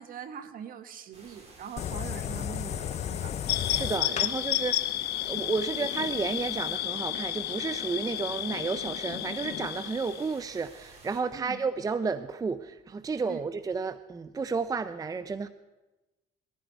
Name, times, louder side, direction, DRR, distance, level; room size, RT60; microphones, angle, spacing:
voice 1, 0.0-3.4 11.3-11.6 13.3-13.4, right 7 dB, 55° right, 9 dB, 1.5 m, -42 dB
sound 1, 1.1-11.2, right 2 dB, 40° right, 4.3 m, -53 dB
sound 2, 1.8-6.8, left 9 dB, 40° left, 0.5 m, -36 dB
sound 3, 3.5-10.3, left 14 dB, 75° left, 0.8 m, -32 dB
voice 2, 3.7-4.9 5.3-15.5, right 4 dB, 20° right, 12 dB, 0.5 m, -32 dB
20.5 x 14.5 x 4.5 m, 1.1 s
cardioid pair, 110°, 17 cm